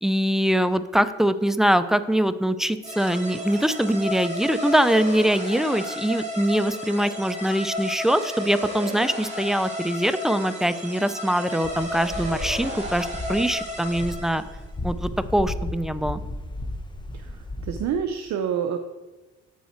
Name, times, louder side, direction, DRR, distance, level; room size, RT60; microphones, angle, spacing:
voice 1, 0.0-14.4 14.8-16.2, equal, ahead, 12 dB, 0.3 m, -23 dB
sound 1, 2.8-14.5, equal, 20° right, 2.2 m, -33 dB
sound 2, 11.6-17.9, left 1 dB, 15° left, 0.7 m, -34 dB
voice 2, 17.1-18.8, right 7 dB, 65° right, 6 dB, 0.6 m, -28 dB
7.6 x 5.6 x 4.4 m, 1.2 s
cardioid pair, 90°, 30 cm